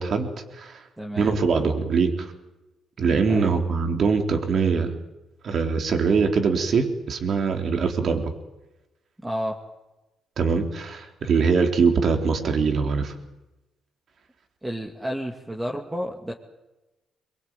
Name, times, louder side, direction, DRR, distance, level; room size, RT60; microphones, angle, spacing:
voice 1, 0.0-0.8 1.2-2.3 3.0-4.9 5.4-8.3 10.4-13.1, right 5 dB, 55° right, 4 dB, 3.6 m, -23 dB
voice 2, 1.0-1.3 3.3-3.5 9.2-9.6 14.6-16.3, equal, 10° right, 0 dB, 2.5 m, -31 dB
23.0 x 22.5 x 9.1 m, 1.0 s
cardioid pair, 90°, 0 cm